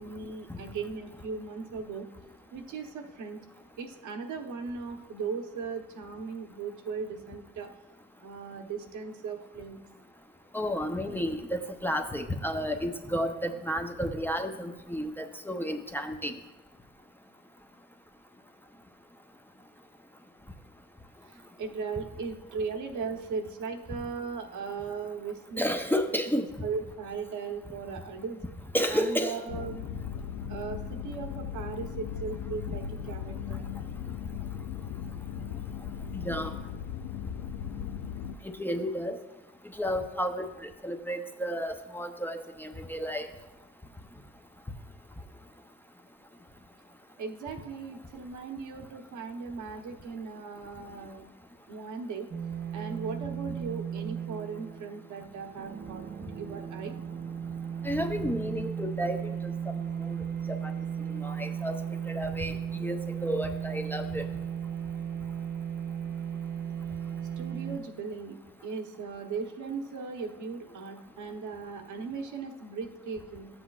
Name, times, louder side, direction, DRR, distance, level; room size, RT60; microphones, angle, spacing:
voice 1, 0.0-2.1 2.5-3.4 3.8-7.7 8.2-9.8 21.3-25.7 26.6-28.4 28.9-29.9 30.5-33.6 47.2-51.2 51.7-52.3 52.7-56.0 56.3-57.0 67.4-68.4 68.6-73.5, right 5 dB, 75° right, 4 dB, 1.1 m, -38 dB
voice 2, 10.5-16.4 25.6-26.5 28.7-29.4 36.1-36.5 38.6-39.2 39.8-43.3 57.8-59.7 60.1-60.2 60.5-60.7 61.1-61.8 62.1-64.2, equal, 5° left, 5 dB, 0.6 m, -32 dB
sound 1, 29.5-38.3, left 8 dB, 80° left, 0.5 m, -37 dB
sound 2, 52.3-67.8, right 8 dB, 35° right, 0.6 m, -36 dB
12.0 x 7.8 x 2.4 m, 1.1 s
cardioid pair, 90°, 30 cm